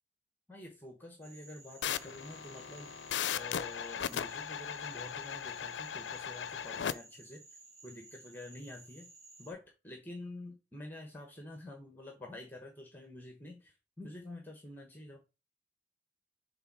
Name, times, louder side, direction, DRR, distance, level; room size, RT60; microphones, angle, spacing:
voice 1, 0.5-2.9 3.4-9.1 9.4-15.2, left 1 dB, 10° left, 2 dB, 1.0 m, -48 dB
Frog, 1.2-9.5, right 2 dB, 35° right, 1.9 m, -56 dB
sound 1, 1.8-6.9, left 8 dB, 80° left, 0.4 m, -38 dB
6.7 x 3.6 x 4.6 m, 0.28 s
head